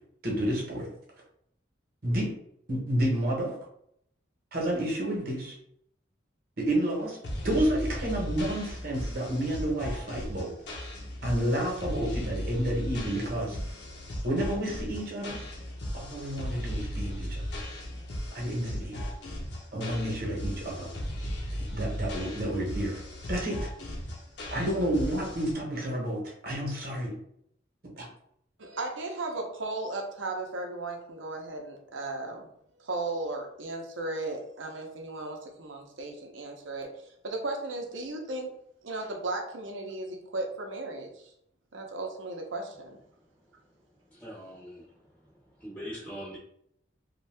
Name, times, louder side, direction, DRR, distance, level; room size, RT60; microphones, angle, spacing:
voice 1, 0.2-0.9 2.0-2.3 2.7-3.5 4.5-5.5 6.6-7.2 7.4-10.5 11.2-13.6 14.2-15.4 15.9-17.4 18.3-19.0 19.7-20.9 21.7-23.0 23.3-23.7 24.5-27.1 28.0-28.1, right 1 dB, 50° right, -2 dB, 0.9 m, -30 dB
sound 1, 7.2-25.5, equal, 65° left, 0.7 m, -36 dB
voice 2, 28.6-32.5 32.8-38.5 38.8-41.3 41.7-43.0, right 2 dB, 80° right, 2 dB, 0.6 m, -36 dB
voice 3, 44.1-44.8 45.6-46.4, equal, 10° left, -7 dB, 0.5 m, -41 dB
2.6 x 2.3 x 3.3 m, 0.71 s
head